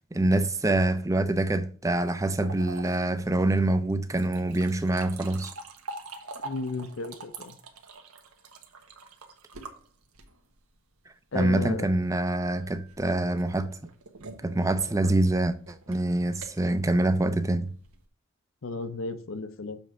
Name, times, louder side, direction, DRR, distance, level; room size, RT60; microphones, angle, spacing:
voice 1, 0.1-5.5 11.3-13.7 14.4-17.7, right 2 dB, 15° right, 0.5 m, -25 dB
sound 1, 1.9-10.6 12.3-18.1, right 3 dB, 85° right, 1.2 m, -45 dB
voice 2, 6.4-7.6 11.3-11.9 18.6-19.8, left 3 dB, 65° left, 0.7 m, -34 dB
7.2 x 3.4 x 6.0 m
head